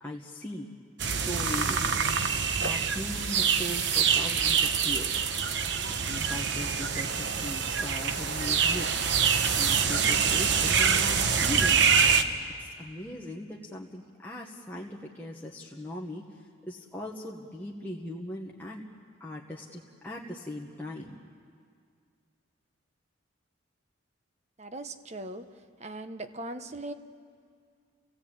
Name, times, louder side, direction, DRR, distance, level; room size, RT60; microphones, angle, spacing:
voice 1, 0.0-0.7 1.0-1.9 2.6-5.3 5.9-9.1 9.6-11.9 12.6-16.2 16.6-18.8 19.2-21.2, left 1 dB, 10° left, -3 dB, 1.3 m, -39 dB
sound 1, 1.0-12.2, right 6 dB, 60° right, 1.0 m, -25 dB
voice 2, 24.6-25.5 25.8-26.9, right 2 dB, 35° right, 9 dB, 1.0 m, -39 dB
29.5 x 17.0 x 8.7 m, 2.2 s
head